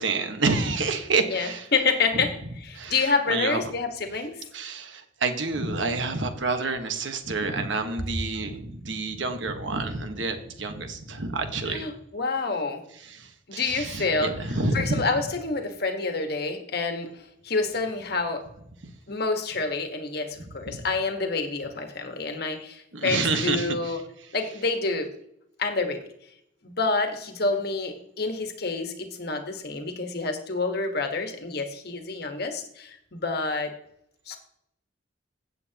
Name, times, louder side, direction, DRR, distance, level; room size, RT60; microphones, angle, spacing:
voice 1, 0.0-1.7 2.1-2.2 2.7-3.7 4.5-11.9 13.0-15.0 20.7-20.8 22.9-24.0, right 3 dB, 70° right, 7 dB, 1.3 m, -28 dB
voice 2, 1.3-2.3 2.6-4.4 11.7-12.8 13.5-14.3 14.7-17.1 17.4-18.4 19.1-24.0 24.3-25.1 25.6-26.0 26.6-33.7 34.3-34.4, left 3 dB, 55° left, 5 dB, 1.4 m, -28 dB
16.0 x 7.9 x 2.9 m, 0.75 s
head